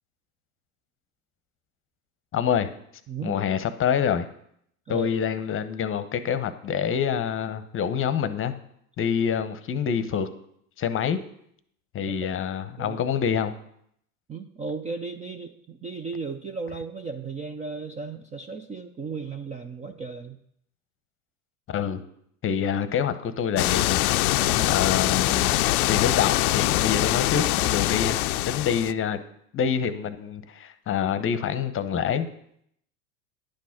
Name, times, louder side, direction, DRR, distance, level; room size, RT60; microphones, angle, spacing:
voice 1, 2.3-2.7 3.2-4.3 4.9-8.5 9.0-10.3 10.8-11.2 11.9-13.5 21.7-22.0 22.4-24.0 24.6-25.6 25.9-28.2 28.5-29.2 29.5-32.3, left 8 dB, 30° left, 12 dB, 0.8 m, -26 dB
voice 2, 3.1-3.4 4.9-5.1 12.8-13.0 14.3-20.4 24.4-24.7, right 4 dB, 15° right, 7 dB, 0.4 m, -35 dB
sound 1, 23.6-28.9, left 16 dB, 75° left, 0.5 m, -23 dB
10.0 x 6.2 x 5.8 m, 0.71 s
hypercardioid pair, 95°, 45 cm